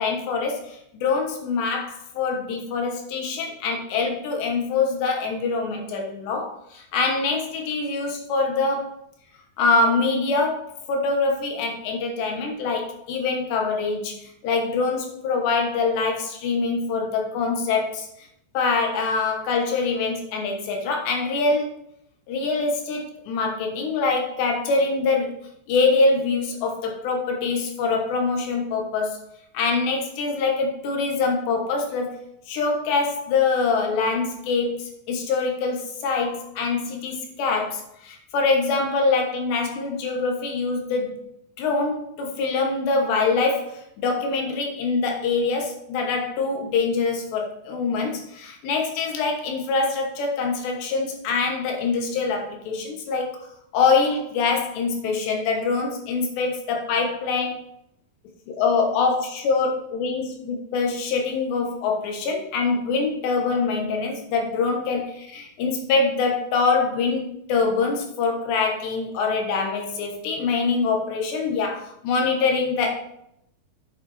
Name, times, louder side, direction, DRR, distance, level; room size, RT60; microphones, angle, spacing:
voice 1, 0.0-9.0 9.6-10.6 10.9-18.3 18.5-21.7 22.3-25.3 25.7-29.2 29.5-32.1 32.5-41.1 41.6-53.5 53.7-57.6 58.5-72.9, left 4 dB, 75° left, 1 dB, 3.3 m, -24 dB
8.8 x 6.8 x 4.2 m, 0.76 s
omnidirectional pair, 5.2 m